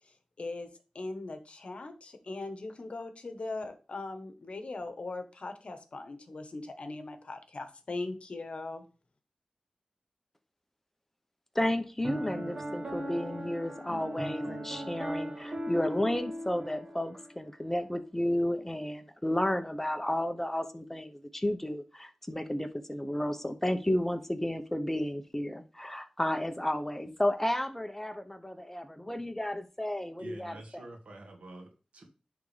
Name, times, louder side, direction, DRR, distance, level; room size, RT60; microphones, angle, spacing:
voice 1, 0.4-0.7 0.9-8.8, left 2 dB, 65° left, 8 dB, 1.1 m, -40 dB
voice 2, 11.5-30.8, left 1 dB, 15° left, 7 dB, 0.9 m, -32 dB
Piano, 12.0-17.3, equal, 50° right, 2.0 m, -38 dB
voice 3, 30.2-32.0, right 2 dB, 85° right, 3 dB, 1.8 m, -47 dB
10.0 x 3.6 x 3.4 m, 0.34 s
cardioid pair, 50°, 2 cm